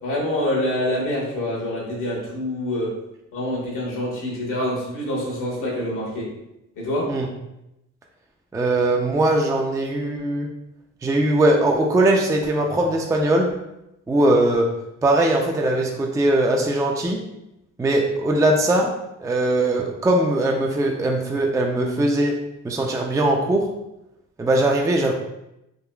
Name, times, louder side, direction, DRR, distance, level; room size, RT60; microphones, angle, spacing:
voice 1, 0.0-2.9 3.3-6.3 6.8-7.1, left 1 dB, 75° left, -4 dB, 1.2 m, -26 dB
voice 2, 8.5-10.5 11.0-13.6 14.1-17.2 17.8-23.7 24.4-25.1, right 1 dB, 10° right, 1 dB, 0.3 m, -20 dB
3.7 x 2.4 x 2.2 m, 0.87 s
cardioid pair, 70°, 31 cm